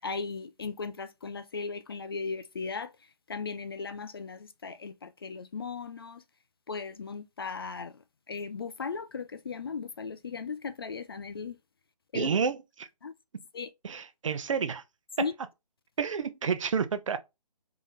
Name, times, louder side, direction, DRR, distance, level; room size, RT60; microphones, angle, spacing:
voice 1, 0.0-2.9 3.3-6.2 6.7-8.0 8.3-11.6 12.1-12.3 13.0-13.1 13.5-13.7 15.2-15.3, left 5 dB, 35° left, 0.4 m, -37 dB
voice 2, 12.1-12.9 13.8-14.8 15.2-15.3 16.0-17.2, right 6 dB, 50° right, 0.7 m, -29 dB
3.9 x 3.7 x 3.1 m
figure-of-eight pair, 145°, 21 cm